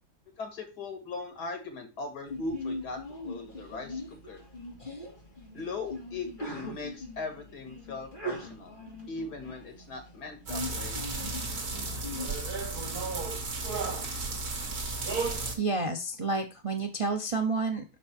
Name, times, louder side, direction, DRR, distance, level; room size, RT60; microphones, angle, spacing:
voice 1, 0.4-4.4 5.5-8.8 9.1-11.0, left 3 dB, 80° left, 5 dB, 2.3 m, -39 dB
Sneeze, 2.3-12.3, left 1 dB, 30° left, 2.9 m, -41 dB
sound 1, 10.5-15.5, right 3 dB, 70° right, 2.1 m, -33 dB
voice 2, 15.6-17.8, right 3 dB, 40° right, 3 dB, 0.5 m, -30 dB
6.0 x 5.3 x 4.2 m, 0.28 s
omnidirectional pair, 1.7 m